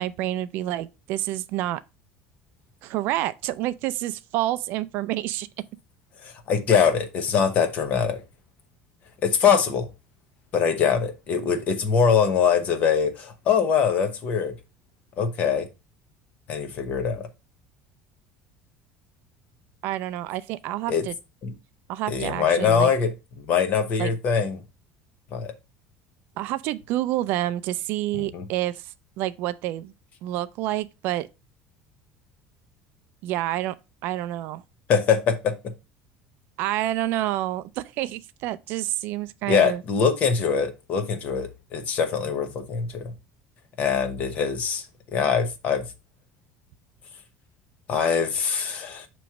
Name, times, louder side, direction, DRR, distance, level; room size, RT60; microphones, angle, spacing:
voice 1, 0.0-1.8 2.8-5.5 19.8-21.1 21.9-22.9 24.0-24.2 26.4-29.9 30.2-31.3 33.2-33.7 34.0-34.6 36.6-39.8, right 14 dB, 50° right, 0.3 m, -28 dB
voice 2, 6.2-8.2 9.2-9.9 10.5-14.5 15.2-15.7 16.5-17.3 20.9-21.1 21.4-21.5 22.1-23.1 23.4-24.6 25.3-25.5 28.1-28.5 34.9-35.6 39.5-43.1 43.8-44.9 45.1-45.8 47.9-49.1, left 6 dB, 35° left, 0.9 m, -23 dB
6.1 x 3.0 x 5.7 m
cardioid pair, 175°, 4 cm